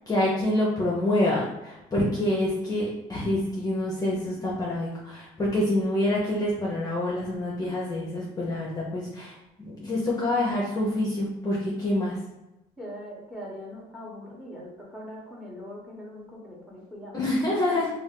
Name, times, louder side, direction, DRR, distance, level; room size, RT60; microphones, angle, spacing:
voice 1, 0.1-12.2 17.1-17.9, left 1 dB, 20° left, -5 dB, 0.7 m, -27 dB
voice 2, 12.8-17.8, equal, 5° right, -3 dB, 1.1 m, -42 dB
2.4 x 2.4 x 3.7 m, 0.97 s
cardioid pair, 110°, 17 cm